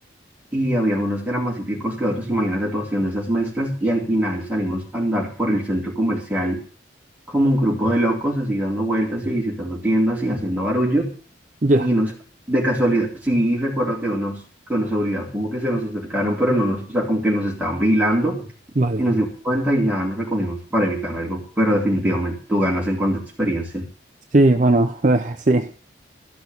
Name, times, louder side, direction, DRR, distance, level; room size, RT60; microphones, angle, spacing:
voice 1, 0.5-6.6 7.3-11.1 11.8-12.1 12.5-14.4 14.7-18.5 19.0-23.9, equal, 10° right, -3 dB, 3.6 m, -22 dB
voice 2, 24.3-25.7, right 2 dB, 40° right, 7 dB, 0.6 m, -17 dB
13.5 x 6.2 x 8.1 m, 0.43 s
head